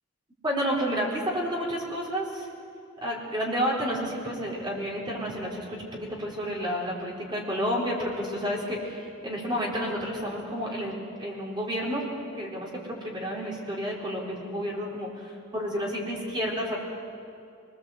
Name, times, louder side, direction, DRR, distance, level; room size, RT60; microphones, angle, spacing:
voice 1, 0.4-2.5 3.0-12.0 12.4-16.8, equal, 20° right, -4 dB, 4.2 m, -30 dB
24.5 x 21.0 x 8.0 m, 2.4 s
head